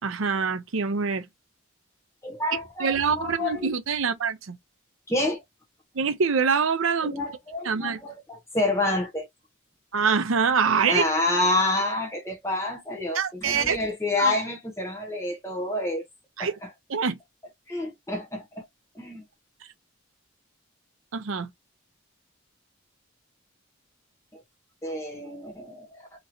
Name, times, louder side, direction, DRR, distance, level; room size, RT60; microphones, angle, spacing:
voice 1, 0.0-1.3 2.8-4.6 5.9-7.1 7.6-8.0 9.9-11.0 13.1-13.8 14.2-14.3 16.4-16.6 16.9-17.2 21.1-21.5, right 6 dB, 75° right, 0.6 m, -25 dB
voice 2, 2.2-3.7 5.1-5.4 7.0-9.3 10.9-16.0 16.4-16.7 17.7-18.6 18.9-19.2 24.3-24.4 24.8-26.2, left 2 dB, 15° left, 1.2 m, -28 dB
3.0 x 2.7 x 2.6 m
head